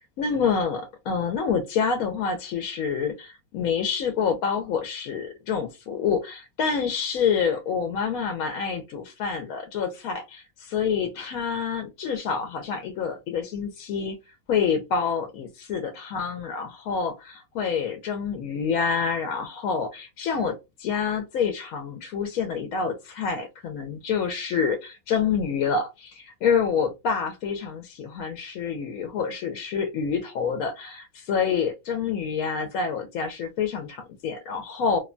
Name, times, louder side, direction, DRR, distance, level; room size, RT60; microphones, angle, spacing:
voice 1, 0.2-14.2 14.5-35.0, left 6 dB, 75° left, 1.0 m, -27 dB
2.8 x 2.1 x 2.5 m
omnidirectional pair, 1.5 m